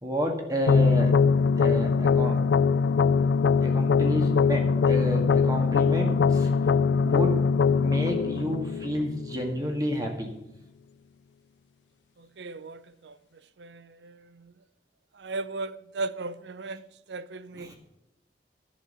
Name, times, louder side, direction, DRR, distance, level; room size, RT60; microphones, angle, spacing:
voice 1, 0.0-1.2 1.6-2.4 3.6-6.5 7.0-7.5 7.7-10.3 17.6-17.7, equal, 20° right, 2.0 m, -30 dB
sound 1, 0.7-9.7, left 5 dB, 85° left, 0.3 m, -22 dB
voice 2, 12.2-13.2 13.6-14.5 15.1-17.7, right 3 dB, 85° right, 0.6 m, -37 dB
10.5 x 6.3 x 9.0 m
head